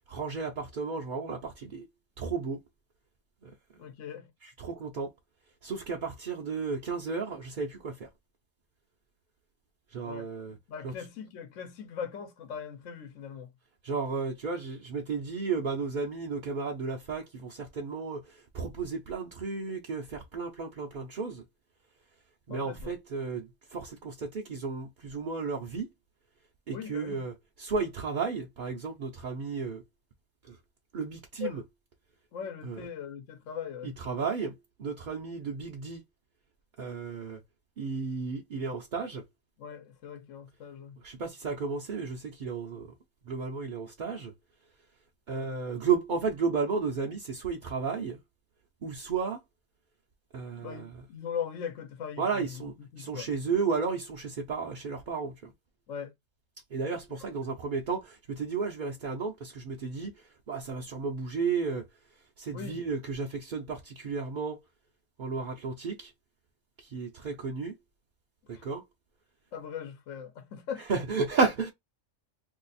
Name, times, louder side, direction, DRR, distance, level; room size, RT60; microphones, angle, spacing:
voice 1, 0.1-1.8 2.2-2.6 3.4-3.5 4.4-5.1 5.6-8.1 9.9-10.6 10.8-10.9 13.8-21.4 22.5-25.9 26.7-29.8 30.5-30.6 30.9-31.6 32.6-32.8 33.8-34.5 34.8-36.0 36.8-37.4 37.8-39.2 41.0-42.9 43.3-44.3 45.3-48.2 48.8-49.4 50.3-50.9 52.2-55.5 56.7-60.1 60.5-61.9 62.4-64.6 65.2-66.1 66.8-67.7 68.6-68.8 70.9-71.7, right 5 dB, 50° right, 0.6 m, -33 dB
voice 2, 3.8-4.3 10.0-10.3 10.7-13.5 22.5-22.9 26.7-27.3 31.4-31.6 32.3-33.9 39.6-41.0 50.6-53.3 55.9-56.1 57.5-57.6 62.5-62.8 68.5-68.6 69.5-70.9, left 7 dB, 75° left, 1.0 m, -40 dB
2.7 x 2.4 x 4.0 m
omnidirectional pair, 1.3 m